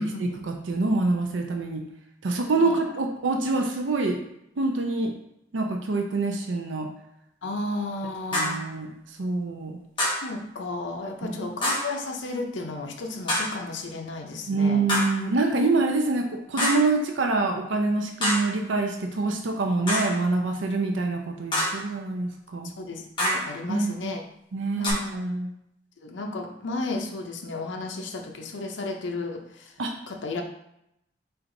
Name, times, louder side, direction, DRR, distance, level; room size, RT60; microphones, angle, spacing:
voice 1, 0.2-1.8 2.2-4.2 4.6-5.1 5.5-6.9 8.3-8.9 9.2-9.8 11.2-11.4 14.5-22.7 23.7-24.1 24.5-25.5 29.8-29.9 30.3-30.4, right 3 dB, 80° right, 3 dB, 0.6 m, -26 dB
voice 2, 7.4-8.5 10.0-14.8 22.8-24.2 24.8-25.0 26.1-29.4 30.1-30.4, left 2 dB, 80° left, 3 dB, 0.6 m, -33 dB
sound 1, 8.3-8.7 10.0-10.3 11.6-12.0 13.3-13.6 14.9-15.3 16.6-16.9 18.2-18.6 19.9-20.2 21.5-21.9 23.2-23.6 24.8-24.9, left 1 dB, 25° left, 1.4 m, -26 dB
4.4 x 3.9 x 2.6 m, 0.79 s
head